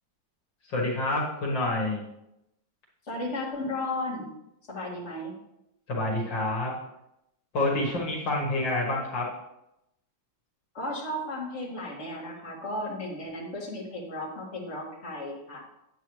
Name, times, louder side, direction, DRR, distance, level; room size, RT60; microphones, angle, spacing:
voice 1, 0.7-2.0 5.9-6.7 7.5-9.3, left 2 dB, 70° left, -3 dB, 2.3 m, -28 dB
voice 2, 3.1-4.3 4.7-5.3 7.8-8.0 10.7-15.6, left 1 dB, 35° left, -5 dB, 2.4 m, -34 dB
8.9 x 8.5 x 3.2 m, 0.84 s
omnidirectional pair, 2.1 m